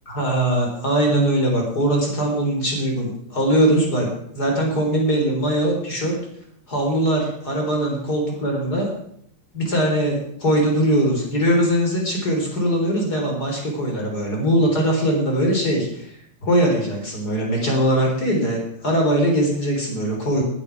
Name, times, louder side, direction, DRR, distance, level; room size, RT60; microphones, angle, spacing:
voice 1, 0.1-4.1 4.3-6.2 6.7-8.9 9.5-16.1 16.4-20.4, right 1 dB, 30° left, 0 dB, 4.2 m, -21 dB
18.5 x 8.8 x 6.0 m, 0.69 s
omnidirectional pair, 3.6 m